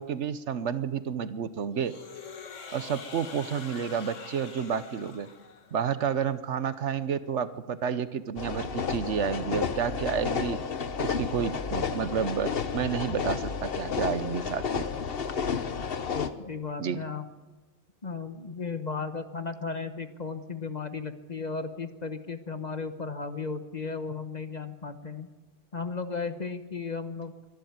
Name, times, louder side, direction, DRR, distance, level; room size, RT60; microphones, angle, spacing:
voice 1, 0.0-1.9 2.7-5.3 5.7-10.6 11.0-14.9 16.8-17.0, right 7 dB, 70° right, 13 dB, 1.2 m, -30 dB
sound 1, 1.8-5.9, left 5 dB, 75° left, 1.8 m, -45 dB
sound 2, 8.4-16.3, left 6 dB, 55° left, 1.2 m, -31 dB
voice 2, 16.1-17.2 18.0-25.3 25.7-27.5, left 4 dB, 35° left, 9 dB, 1.1 m, -35 dB
24.0 x 11.5 x 9.4 m, 1.3 s
omnidirectional pair, 1.3 m